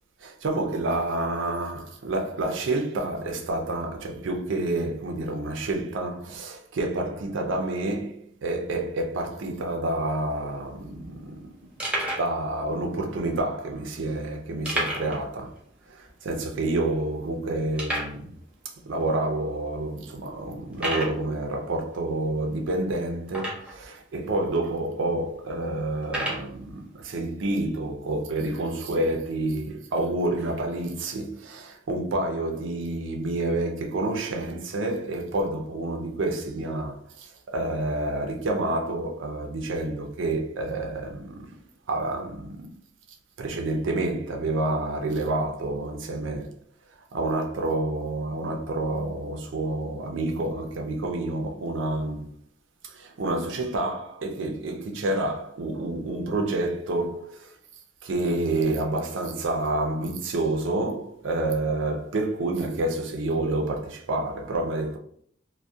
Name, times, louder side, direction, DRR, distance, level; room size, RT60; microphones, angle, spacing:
voice 1, 0.2-11.5 12.2-15.5 15.9-18.3 18.9-41.5 41.9-42.7 43.4-46.5 47.1-52.3 52.8-57.5 58.0-65.0, right 2 dB, 80° right, 0.5 m, -28 dB
sound 1, 10.3-10.4 10.6-10.8 11.3-11.4 11.8-12.3 13.1-13.2 14.6-15.2 15.5-15.6 16.1-16.2 16.7-16.8 17.8-18.2 19.0-19.1 19.7-19.8 20.7-21.2 23.3-23.8 24.6-24.7 26.0-26.5, right 1 dB, 5° right, 0.5 m, -30 dB
2.3 x 2.1 x 2.5 m
head